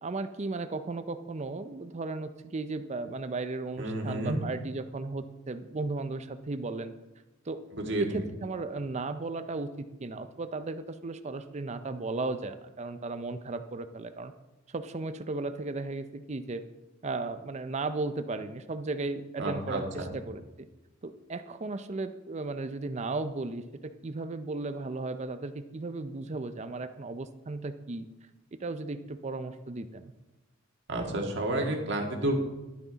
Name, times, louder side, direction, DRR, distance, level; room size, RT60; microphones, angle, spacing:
voice 1, 0.0-6.9 7.5-7.6 8.0-14.3 14.7-16.6 17.0-20.4 21.0-28.1 28.6-30.1, right 3 dB, 35° right, 10 dB, 0.5 m, -35 dB
voice 2, 3.8-4.4 7.7-8.1 19.4-20.1 30.9-32.4, right 1 dB, 65° right, 1 dB, 1.9 m, -30 dB
11.5 x 9.4 x 4.0 m, 1.0 s
head